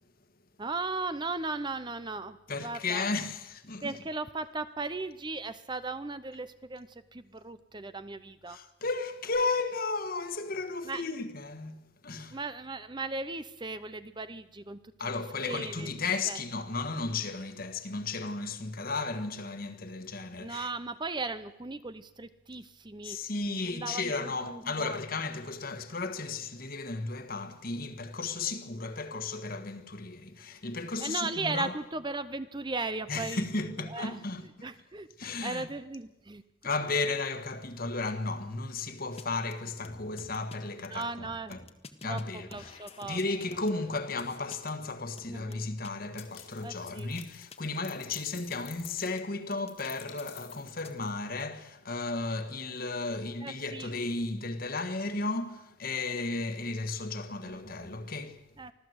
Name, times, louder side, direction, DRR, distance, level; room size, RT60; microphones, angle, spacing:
voice 1, 0.6-3.1 3.8-8.6 10.8-11.0 12.3-15.9 16.3-16.4 20.4-23.2 23.6-25.0 31.0-34.2 34.6-35.1 35.4-36.4 40.9-41.5 42.0-43.2 45.3-45.7 46.6-47.1 53.4-53.9 57.4-57.9 58.6-58.7, right 3 dB, 20° right, 0.7 m, -37 dB
voice 2, 2.5-3.9 8.5-11.8 12.0-12.4 15.0-20.7 23.0-31.8 33.1-34.5 35.2-35.7 36.6-41.6 42.0-58.5, left 3 dB, 45° left, 1.5 m, -34 dB
sound 1, 39.2-39.3 39.5-39.6 39.8-40.6 40.8-42.2 42.5-44.7 45.2-45.9 46.2-46.4 46.9-47.2 47.5-47.6 47.8-49.2 49.5-50.9, left 3 dB, 30° left, 1.5 m, -50 dB
sound 2, 46.2-51.4, left 12 dB, 75° left, 2.9 m, -51 dB
24.5 x 15.5 x 8.0 m
head